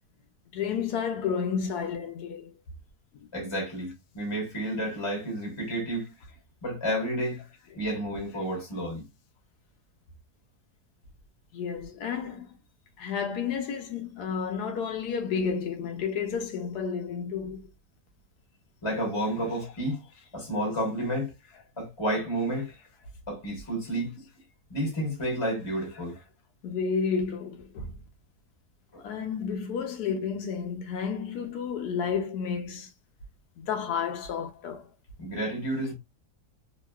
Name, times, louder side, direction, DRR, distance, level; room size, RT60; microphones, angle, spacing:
voice 1, 0.5-2.5 11.5-12.6 13.0-17.7 26.6-28.0 29.0-32.9 33.6-34.9, left 6 dB, 85° left, 1.2 m, -31 dB
voice 2, 3.3-6.1 6.6-7.4 7.7-9.0 18.8-20.0 20.3-21.3 21.8-22.7 23.3-24.2 24.7-26.2 28.9-29.0 35.2-35.9, right 1 dB, 20° left, 1.1 m, -30 dB
2.9 x 2.9 x 2.2 m
omnidirectional pair, 1.6 m